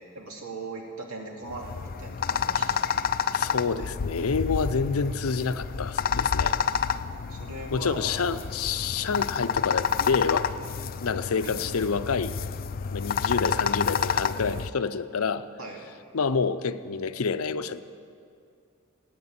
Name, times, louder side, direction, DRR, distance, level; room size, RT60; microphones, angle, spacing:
voice 1, 0.0-2.9 7.3-8.1 11.4-11.5 15.6-15.8, right 2 dB, 85° right, 0 dB, 2.5 m, -39 dB
sound 1, 1.5-14.7, left 6 dB, 45° left, 0.4 m, -29 dB
voice 2, 3.3-6.6 7.7-10.5 11.0-12.3 12.9-15.5 16.1-17.8, left 5 dB, 90° left, 12 dB, 0.6 m, -28 dB
16.0 x 9.4 x 8.7 m, 2.4 s
head